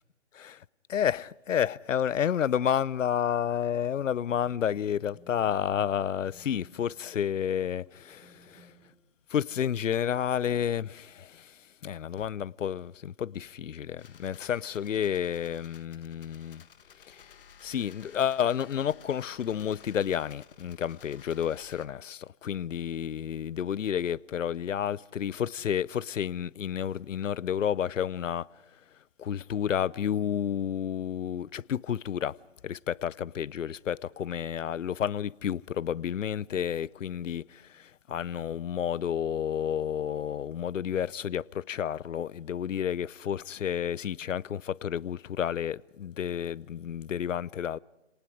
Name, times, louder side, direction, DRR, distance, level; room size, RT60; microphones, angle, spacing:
voice 1, 0.3-8.7 9.3-16.6 17.1-17.3 17.6-28.5 29.2-32.4 32.6-47.8, left 9 dB, 80° left, 0.6 m, -31 dB
sound 1, 4.0-8.9, right 2 dB, 5° right, 0.7 m, -60 dB
sound 2, 14.0-21.9, left 8 dB, 45° left, 1.3 m, -55 dB
30.0 x 19.0 x 4.9 m
hypercardioid pair, 155°, 38 cm